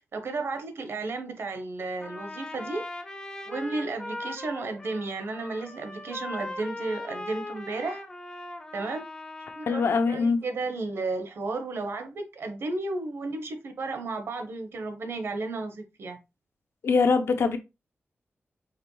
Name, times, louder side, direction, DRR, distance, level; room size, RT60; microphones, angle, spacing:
voice 1, 0.0-2.9 3.5-8.0 8.7-9.0 9.5-9.8 10.1-16.2, right 3 dB, 65° right, 0.9 m, -33 dB
Trumpet, 2.0-10.1, left 2 dB, 15° left, 0.5 m, -39 dB
voice 2, 9.7-10.4 16.8-17.6, left 4 dB, 65° left, 0.7 m, -23 dB
5.0 x 3.0 x 3.0 m
wide cardioid pair, 175°, 4 cm